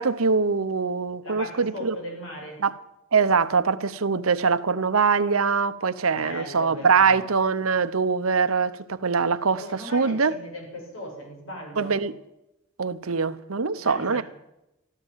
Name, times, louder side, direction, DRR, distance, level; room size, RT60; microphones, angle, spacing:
voice 1, 0.0-2.0 2.6-2.7 3.1-10.3 11.8-12.1 12.8-14.2, right 5 dB, 90° right, 0.9 m, -23 dB
voice 2, 1.2-2.6 6.1-7.2 9.6-12.0 13.8-14.2, left 1 dB, 75° left, 7.3 m, -37 dB
14.0 x 13.0 x 7.4 m
head